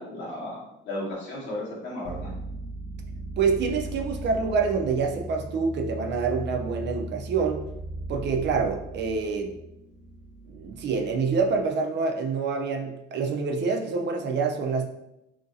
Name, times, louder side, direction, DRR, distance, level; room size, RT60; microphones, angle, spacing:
voice 1, 0.0-2.3, left 1 dB, 75° left, -6 dB, 1.3 m, -35 dB
sound 1, 2.0-11.6, right 1 dB, 40° left, 0.6 m, -38 dB
voice 2, 3.4-7.6 8.1-9.5 10.5-14.9, right 5 dB, 60° right, 4 dB, 0.5 m, -26 dB
2.8 x 2.6 x 2.6 m, 0.87 s
cardioid pair, 90°, 20 cm